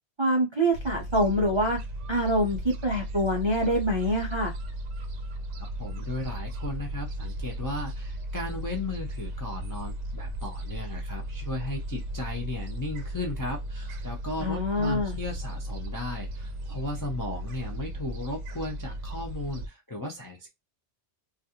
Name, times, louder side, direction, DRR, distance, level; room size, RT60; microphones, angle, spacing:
voice 1, 0.2-1.8 2.1-4.5 14.4-15.1, equal, 45° right, 0.4 m, -25 dB
Gull seagull, 0.7-19.7, right 1 dB, 90° right, 0.9 m, -36 dB
voice 2, 5.8-20.5, left 2 dB, 35° left, 0.3 m, -36 dB
2.4 x 2.3 x 2.7 m
omnidirectional pair, 1.2 m